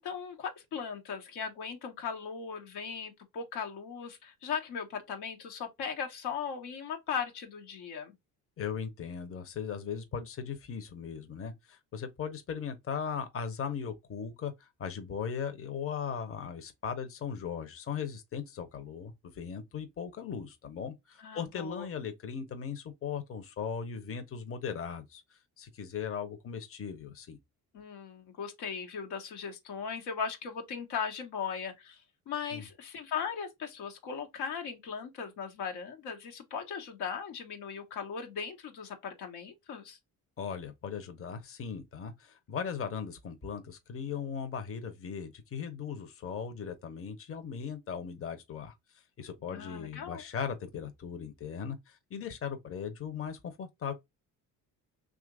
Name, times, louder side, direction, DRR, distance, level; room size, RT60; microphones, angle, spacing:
voice 1, 0.0-8.1 21.2-21.9 27.7-40.0 49.5-50.2, left 6 dB, 70° left, 1.0 m, -38 dB
voice 2, 8.6-27.4 32.5-32.6 40.4-48.8 49.2-53.9, left 7 dB, 35° left, 0.8 m, -38 dB
2.8 x 2.5 x 3.6 m
supercardioid pair, 65°, 41 cm